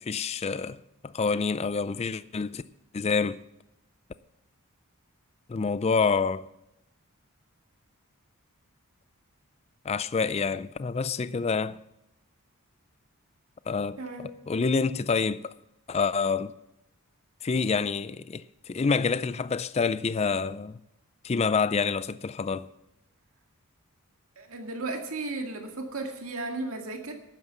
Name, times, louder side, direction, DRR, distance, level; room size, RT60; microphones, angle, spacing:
voice 1, 0.0-2.6 2.9-3.4 5.5-6.5 9.8-11.8 13.7-15.5 15.9-16.5 17.4-20.8 21.2-22.7, left 5 dB, 30° left, 0.4 m, -27 dB
voice 2, 14.0-14.3 24.4-27.1, right 2 dB, 65° right, 2.1 m, -35 dB
12.0 x 9.4 x 7.0 m
head